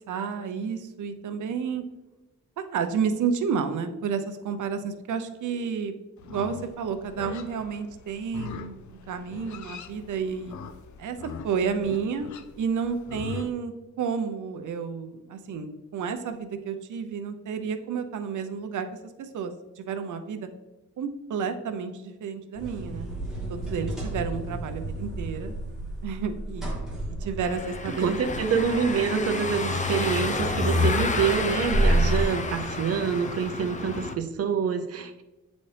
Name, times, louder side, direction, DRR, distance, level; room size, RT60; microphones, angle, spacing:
voice 1, 0.1-1.8 2.6-5.9 6.2-10.6 11.0-11.2 11.4-12.3 12.6-13.7 14.0-18.9 19.2-20.5 21.0-23.1 23.5-25.5 26.0-26.7 27.2-28.1, right 6 dB, 90° right, 8 dB, 0.7 m, -31 dB
Livestock farm animals working animals, 6.2-13.5, left 6 dB, 75° left, 0.5 m, -42 dB
sound 1, 22.5-32.2, right 1 dB, ahead, 1.4 m, -31 dB
Car passing by / Engine, 27.4-34.1, left 3 dB, 25° left, 0.4 m, -29 dB
voice 2, 28.0-35.2, right 6 dB, 55° right, 6 dB, 0.7 m, -26 dB
8.6 x 4.1 x 3.3 m, 1.1 s
wide cardioid pair, 175°, 29 cm